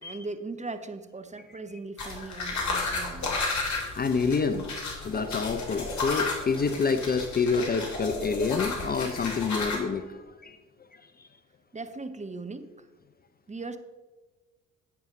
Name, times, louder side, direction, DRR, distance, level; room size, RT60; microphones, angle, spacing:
voice 1, 0.0-3.3 11.7-12.7 13.5-13.8, right 3 dB, 20° right, 9 dB, 1.0 m, -38 dB
sound 1, 2.0-9.8, left 3 dB, 45° left, 2.9 m, -32 dB
voice 2, 3.9-4.7 5.0-10.6, left 5 dB, 25° left, 9 dB, 0.6 m, -27 dB
10.0 x 9.1 x 3.8 m, 1.3 s
figure-of-eight pair, 50°, 39 cm